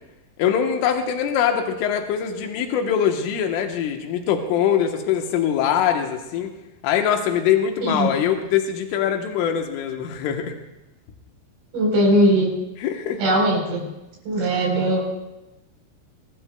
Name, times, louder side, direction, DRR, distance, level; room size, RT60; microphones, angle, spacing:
voice 1, 0.4-6.5 6.8-10.5 12.8-13.2, left 8 dB, 90° left, 4 dB, 3.7 m, -22 dB
voice 2, 11.7-12.5 13.2-13.8 14.3-15.0, right 1 dB, 80° right, -1 dB, 6.7 m, -19 dB
23.5 x 20.5 x 2.3 m, 0.99 s
omnidirectional pair, 5.5 m